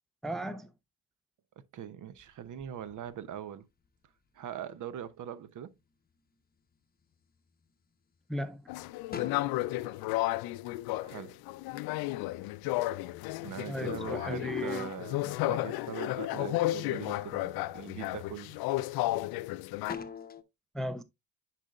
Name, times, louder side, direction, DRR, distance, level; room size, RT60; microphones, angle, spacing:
voice 1, 0.2-0.7 8.3-8.6 13.7-14.9 20.7-21.0, equal, ahead, 0.5 m, -36 dB
voice 2, 1.7-3.7 4.3-5.7 11.0-11.4 13.4-18.6, right 9 dB, 45° right, 0.8 m, -41 dB
sound 1, 2.1-4.1 4.6-5.2 5.8-6.3 6.7-7.7 8.1-8.2 8.6-11.5 11.8-14.1 14.5-15.5 15.9-16.6 17.1-17.3 17.8-19.4 19.8-20.4, left 6 dB, 20° left, 0.9 m, -46 dB
sound 2, 8.7-19.9, left 17 dB, 60° left, 0.5 m, -33 dB
9.9 x 4.2 x 2.4 m
hypercardioid pair, 60°, 42 cm